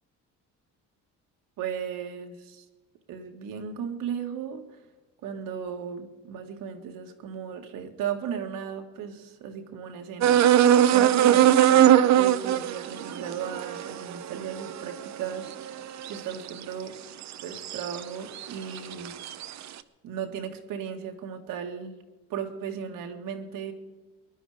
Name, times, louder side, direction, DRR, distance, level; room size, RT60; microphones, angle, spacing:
voice 1, 1.6-2.7 3.1-4.8 5.2-15.8 16.1-17.0 17.4-19.2 20.0-21.9 22.3-23.7, right 7 dB, 75° right, 4 dB, 2.0 m, -36 dB
sound 1, 10.2-16.6 17.2-18.0 18.4-19.5, right 11 dB, 55° right, 0.8 m, -21 dB
19.5 x 11.5 x 5.0 m, 1.2 s
cardioid pair, 115°, 34 cm